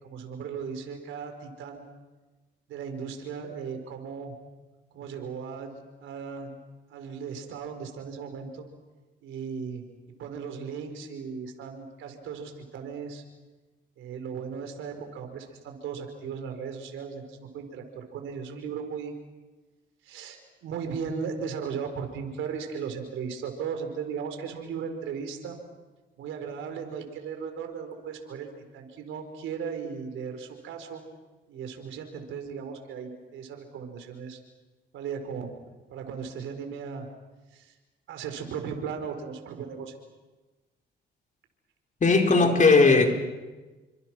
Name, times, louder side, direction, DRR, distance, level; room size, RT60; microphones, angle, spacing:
voice 1, 0.0-1.8 2.7-4.3 4.9-6.6 6.9-8.7 9.2-9.8 10.2-13.2 14.0-19.1 20.0-25.6 26.2-31.0 31.5-34.4 34.9-35.5 35.9-37.1 37.5-37.7 38.1-39.9, right 6 dB, 85° right, 5 dB, 4.5 m, -37 dB
voice 2, 42.0-43.1, left 3 dB, 40° left, 3 dB, 4.6 m, -18 dB
29.5 x 25.5 x 6.2 m, 1.2 s
cardioid pair, 90°, 20 cm